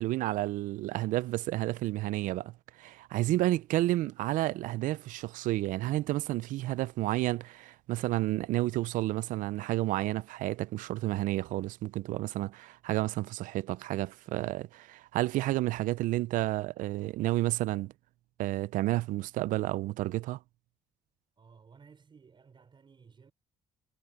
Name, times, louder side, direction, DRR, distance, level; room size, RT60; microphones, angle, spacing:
voice 1, 0.0-17.9 18.4-20.4, right 16 dB, 70° right, 0.5 m, -31 dB
voice 2, 21.4-23.3, right 5 dB, 35° right, 5.8 m, -57 dB
cardioid pair, 95°, 14 cm